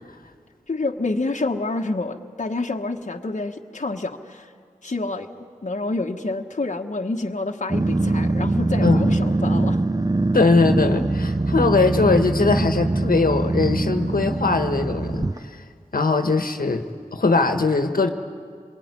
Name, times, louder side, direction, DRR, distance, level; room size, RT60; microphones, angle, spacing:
voice 1, 0.7-4.5 4.8-5.3 5.6-9.8, left 2 dB, 55° left, 2 dB, 1.3 m, -28 dB
Growling, 7.7-15.4, right 2 dB, 25° right, 0.7 m, -22 dB
voice 2, 10.3-15.3 15.9-16.8 17.1-18.1, left 3 dB, 75° left, 6 dB, 1.4 m, -20 dB
27.0 x 22.0 x 9.7 m, 2.1 s
wide cardioid pair, 45°, 15 cm